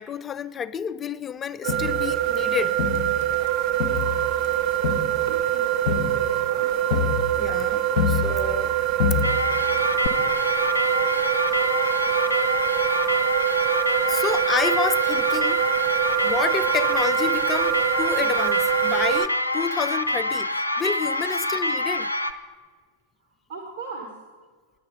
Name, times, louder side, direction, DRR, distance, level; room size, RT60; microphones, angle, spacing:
voice 1, 0.0-2.8 7.3-8.7 14.1-15.6 16.2-22.1, left 7 dB, 25° left, 0.3 m, -29 dB
sound 1, 1.6-19.3, right 13 dB, 40° right, 0.5 m, -24 dB
Crowd, 1.7-3.5 3.8-8.7 9.0-9.7 10.0-10.1, left 6 dB, 50° left, 0.7 m, -28 dB
voice 2, 5.1-6.7 14.1-14.2 23.2-24.1, right 4 dB, 60° right, 1.4 m, -40 dB
sound 2, 9.2-22.3, left 1 dB, 85° left, 0.5 m, -26 dB
9.6 x 9.2 x 5.3 m
figure-of-eight pair, 90°, 0 cm